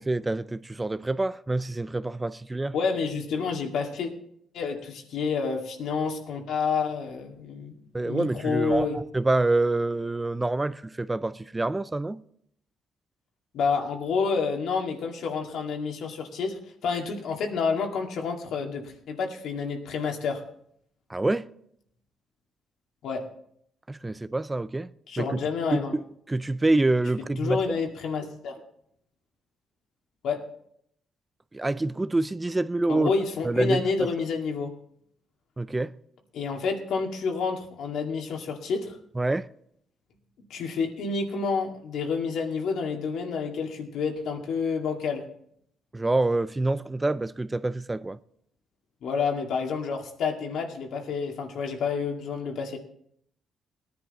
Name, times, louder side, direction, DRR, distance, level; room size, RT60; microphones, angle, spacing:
voice 1, 0.0-2.7 7.9-12.2 21.1-21.5 23.9-24.9 25.2-25.4 25.7-26.0 26.3-27.8 31.5-33.1 33.4-34.1 35.6-35.9 39.2-39.5 45.9-48.2, right 2 dB, 15° right, 0.4 m, -26 dB
voice 2, 2.7-4.1 4.5-9.0 13.5-20.4 23.0-23.2 25.1-25.9 27.4-28.6 30.2-30.5 32.9-34.7 36.3-39.0 40.5-45.3 49.0-52.8, left 5 dB, 75° left, 2.1 m, -29 dB
18.0 x 10.5 x 4.1 m
cardioid pair, 90°, 0 cm